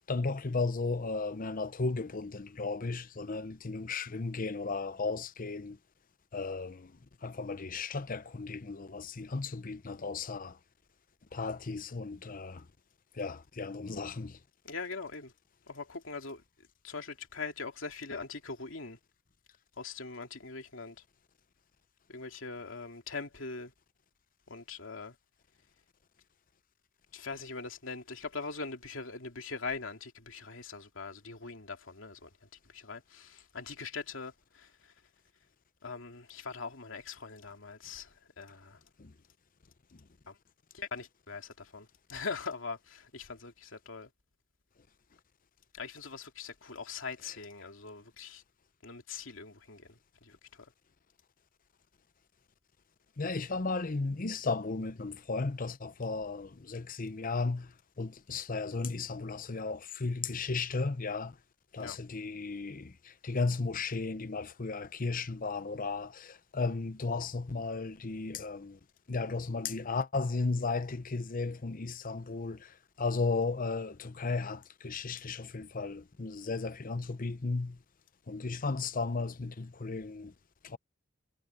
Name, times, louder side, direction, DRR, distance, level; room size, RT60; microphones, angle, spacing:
voice 1, 0.1-5.8 6.3-6.9 7.2-10.6 11.3-12.6 13.1-14.4 39.0-39.1 53.2-57.7 58.0-61.4 61.7-68.8 69.1-77.8 78.3-80.3 80.6-80.8, left 3 dB, 45° left, 0.8 m, -35 dB
voice 2, 14.6-15.3 15.7-16.4 16.8-19.0 19.8-21.0 22.1-23.7 24.5-25.2 27.1-32.3 32.7-34.9 35.8-38.8 40.3-40.4 40.7-44.1 45.7-48.4 48.8-50.7 61.8-62.0, left 4 dB, 75° left, 2.8 m, -42 dB
head